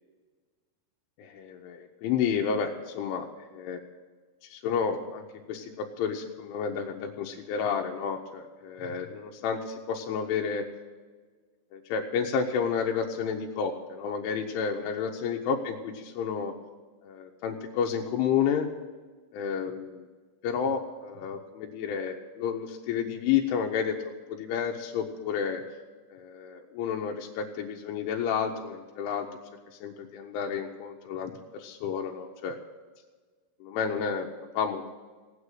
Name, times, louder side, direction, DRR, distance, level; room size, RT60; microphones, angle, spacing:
voice 1, 1.2-3.3 3.5-3.8 4.4-10.7 11.7-16.5 17.0-18.7 19.3-20.1 20.4-25.6 26.1-29.4 29.8-32.6 33.6-34.3 34.5-34.9, left 7 dB, 80° left, 1 dB, 3.2 m, -31 dB
17.0 x 9.8 x 6.5 m, 1.4 s
omnidirectional pair, 5.7 m